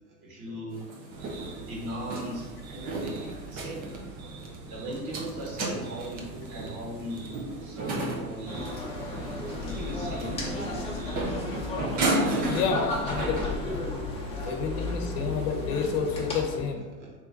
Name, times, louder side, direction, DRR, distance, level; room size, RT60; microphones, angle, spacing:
voice 1, 0.2-0.9 1.5-3.9 4.7-7.3 7.6-8.7 9.4-10.3 14.2-14.4 17.0-17.1, right 1 dB, 40° right, -3 dB, 1.4 m, -38 dB
sound 1, 0.7-16.3, right 2 dB, 20° right, 0.4 m, -34 dB
sound 2, 1.1-12.8, right 4 dB, 90° right, 0.7 m, -45 dB
sound 3, 8.5-16.6, left 3 dB, 15° left, 0.8 m, -34 dB
voice 2, 12.5-13.9 14.4-16.8, left 6 dB, 65° left, 3 dB, 0.9 m, -30 dB
3.3 x 3.3 x 3.7 m, 1.3 s
hypercardioid pair, 100°, 49 cm